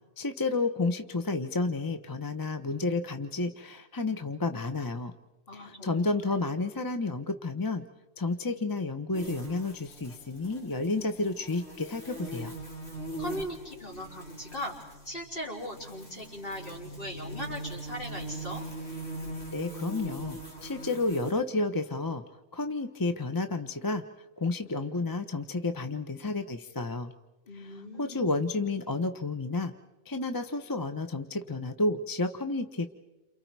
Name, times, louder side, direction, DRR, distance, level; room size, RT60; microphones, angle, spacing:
voice 1, 0.2-5.1 5.5-7.9 8.2-12.5 19.5-22.2 22.5-24.0 24.4-27.1 28.0-29.7 30.1-33.0, left 3 dB, 20° left, 8 dB, 0.8 m, -31 dB
voice 2, 5.5-6.5 13.2-18.6 27.5-28.3, equal, 55° left, -2 dB, 4.5 m, -39 dB
sound 1, 9.1-21.3, right 1 dB, 80° left, 3.8 m, -41 dB
29.5 x 28.0 x 4.7 m, 1.1 s
omnidirectional pair, 1.1 m